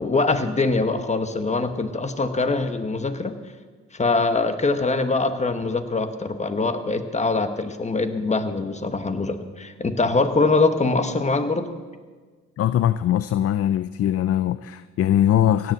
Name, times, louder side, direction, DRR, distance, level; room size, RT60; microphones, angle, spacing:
voice 1, 0.0-3.3 4.0-11.7, left 3 dB, 25° left, 9 dB, 1.3 m, -23 dB
voice 2, 12.6-15.7, left 11 dB, 50° left, 15 dB, 0.5 m, -21 dB
16.5 x 7.8 x 7.8 m, 1.5 s
cardioid pair, 90°, 30 cm